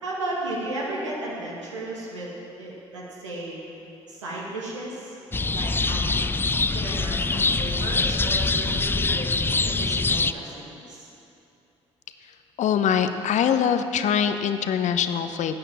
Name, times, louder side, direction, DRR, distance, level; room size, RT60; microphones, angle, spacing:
voice 1, 0.0-3.6 4.1-5.2 5.5-6.2 6.7-9.3 9.6-11.1, right 1 dB, 85° right, -4 dB, 2.1 m, -34 dB
sound 1, 5.3-10.3, left 3 dB, 15° left, 0.4 m, -24 dB
voice 2, 12.6-15.6, left 8 dB, 50° left, 9 dB, 0.8 m, -23 dB
12.0 x 8.9 x 7.4 m, 2.8 s
figure-of-eight pair, 50°, 15 cm